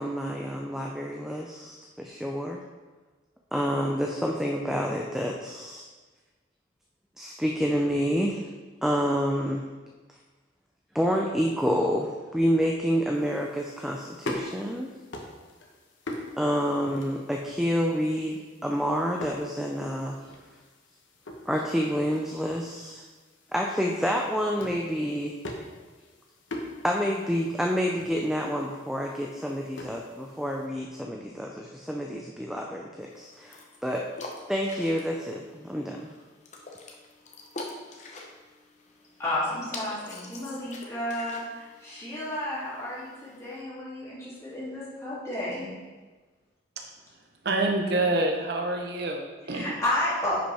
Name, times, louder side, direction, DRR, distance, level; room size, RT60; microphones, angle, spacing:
voice 1, 0.0-2.6 3.5-5.9 7.2-8.5 8.8-9.6 10.9-14.9 16.4-20.2 21.5-23.0 23.5-25.4 26.8-34.1 34.5-36.1, equal, ahead, 0 dB, 0.4 m, -28 dB
sound 1, 13.1-30.7, left 1 dB, 80° left, 1.1 m, -44 dB
sound 2, 33.1-43.6, left 2 dB, 35° left, 0.8 m, -45 dB
voice 2, 39.2-45.7 49.5-50.4, left 1 dB, 15° left, -9 dB, 2.6 m, -32 dB
voice 3, 47.4-49.7, right 2 dB, 55° right, 2 dB, 0.7 m, -27 dB
10.0 x 5.1 x 3.4 m, 1.3 s
head